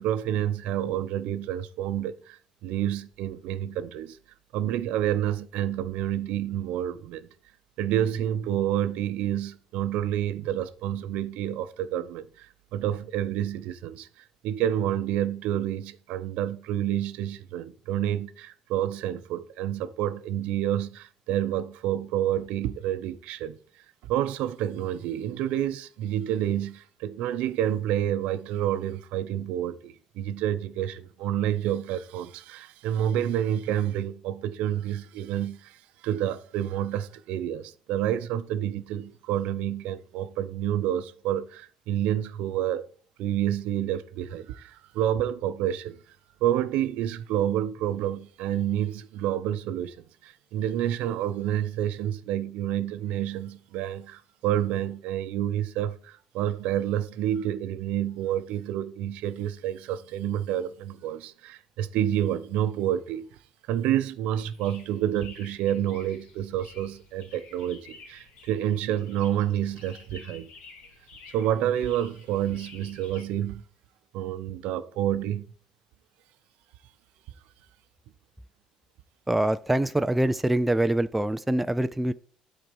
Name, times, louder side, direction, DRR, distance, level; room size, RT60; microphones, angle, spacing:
voice 1, 0.0-4.2 4.5-7.3 7.8-14.1 14.4-23.6 24.0-35.8 36.0-42.9 43.2-46.0 46.4-50.0 50.2-63.4 63.7-70.5 71.3-73.6 74.1-75.4, right 11 dB, 80° right, 0.6 m, -29 dB
sound 1, 64.4-73.3, left 4 dB, 60° left, 2.0 m, -51 dB
voice 2, 79.3-82.1, right 1 dB, 5° right, 0.3 m, -24 dB
12.0 x 4.1 x 5.3 m
cardioid pair, 150°, 2 cm